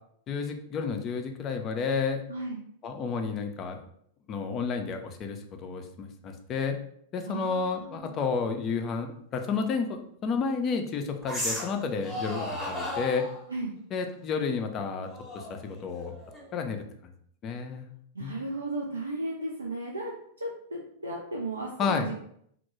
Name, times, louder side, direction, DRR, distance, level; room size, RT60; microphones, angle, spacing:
voice 1, 0.3-2.2 2.8-3.8 4.3-6.8 7.1-13.3 13.9-15.1 15.3-16.1 16.5-16.8 17.4-17.9 18.2-18.3 21.8-22.1, left 5 dB, 30° left, 5 dB, 0.3 m, -31 dB
voice 2, 2.3-2.6 7.3-8.2 13.5-13.7 18.1-20.1 20.4-22.1, right 2 dB, 80° right, -2 dB, 0.3 m, -35 dB
sound 1, 9.5-9.6 11.2-11.8 12.0-13.4 15.1-16.6, left 1 dB, 5° right, 0.7 m, -35 dB
2.1 x 2.0 x 3.0 m, 0.68 s
figure-of-eight pair, 95°, 0 cm